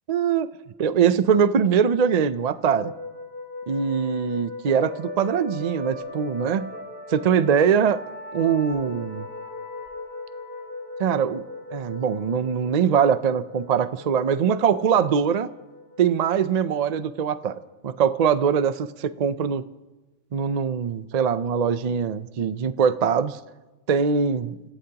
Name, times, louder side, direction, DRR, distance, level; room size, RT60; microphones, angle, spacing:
voice 1, 0.1-0.5 0.8-2.9 3.7-6.7 7.1-8.0 8.3-9.3 11.0-11.4 11.7-15.5 16.0-19.6 20.3-23.4 23.9-24.6, right 7 dB, 50° right, 13 dB, 0.5 m, -22 dB
sound 1, 2.8-18.1, left 2 dB, 50° left, 3.8 m, -39 dB
30.0 x 15.5 x 2.9 m, 1.2 s
omnidirectional pair, 1.3 m